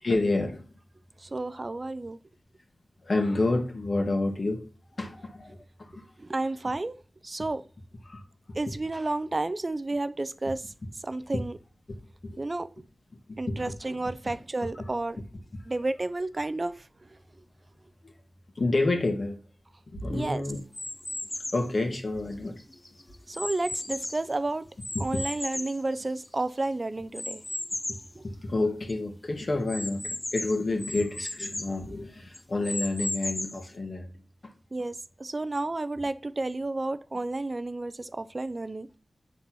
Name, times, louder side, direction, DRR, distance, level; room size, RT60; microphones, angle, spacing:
voice 1, 0.0-0.6 3.0-4.6 5.0-6.0 8.1-8.2 8.7-8.8 11.3-11.4 12.2-12.5 13.3-13.6 14.8-14.9 18.0-18.1 18.6-19.4 19.9-20.6 21.5-22.6 24.9-25.2 27.9-28.0 28.2-34.2, left 2 dB, 50° left, 1.8 m, -29 dB
voice 2, 1.2-2.2 6.2-7.0 7.2-7.7 8.6-10.6 11.0-11.6 12.4-12.7 13.4-15.2 15.7-16.8 20.1-20.4 23.3-24.7 25.0-27.4 28.2-28.3 34.7-39.0, right 2 dB, 35° right, 0.4 m, -31 dB
sound 1, 20.7-21.7 22.3-24.3 24.8-26.5 27.1-28.1 28.6-28.7 28.9-29.0 29.7-31.8 32.3-33.7, left 1 dB, 25° left, 0.5 m, -35 dB
8.3 x 4.0 x 6.1 m
wide cardioid pair, 80°, 0 cm